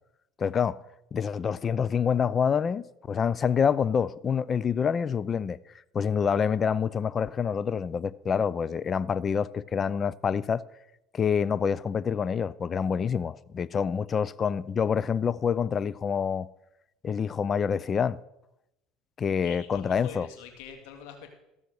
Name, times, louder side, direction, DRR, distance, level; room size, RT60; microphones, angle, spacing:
voice 1, 0.4-0.8 1.1-5.6 5.9-10.6 11.1-16.5 17.0-18.2 19.2-20.3, left 7 dB, 35° left, 0.5 m, -27 dB
voice 2, 19.4-21.3, left 8 dB, 75° left, 2.0 m, -44 dB
15.0 x 7.2 x 6.4 m
supercardioid pair, 100°, 0 cm